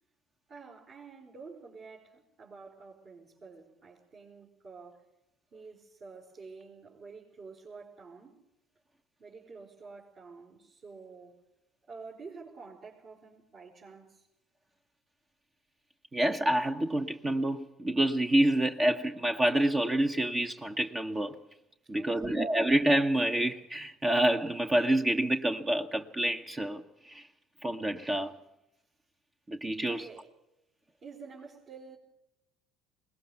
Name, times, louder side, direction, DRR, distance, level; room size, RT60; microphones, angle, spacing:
voice 1, 0.5-5.1 5.5-8.4 9.2-11.4 11.9-14.3 21.8-22.4 29.8-30.3 31.0-32.0, right 4 dB, 50° right, 4.8 m, -49 dB
voice 2, 16.1-21.3 21.9-27.3 27.6-28.3 29.5-30.1, right 1 dB, 20° right, 1.1 m, -28 dB
21.5 x 20.0 x 6.9 m
hypercardioid pair, 65°, 0 cm